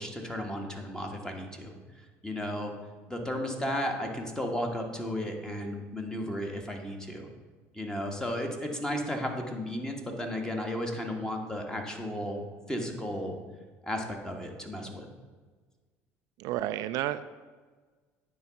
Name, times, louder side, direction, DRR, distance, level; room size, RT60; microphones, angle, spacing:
voice 1, 0.0-2.7 3.1-7.3 7.7-12.4 12.7-13.4 13.8-15.1, left 1 dB, 10° left, 2 dB, 1.6 m, -34 dB
voice 2, 16.4-17.2, right 13 dB, 65° right, 12 dB, 0.3 m, -31 dB
9.4 x 3.9 x 5.8 m, 1.4 s
supercardioid pair, 75°, 7 cm